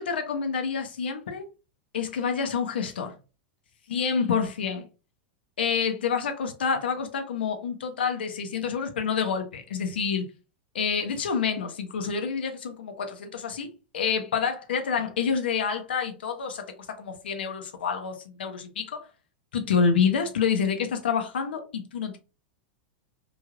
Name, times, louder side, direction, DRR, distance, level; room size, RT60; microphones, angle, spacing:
voice 1, 0.0-1.5 1.9-3.1 3.9-4.9 5.6-10.3 10.7-19.0 19.5-22.2, left 6 dB, 80° left, 0.7 m, -28 dB
3.2 x 2.7 x 2.5 m
hypercardioid pair, 100°, 6 cm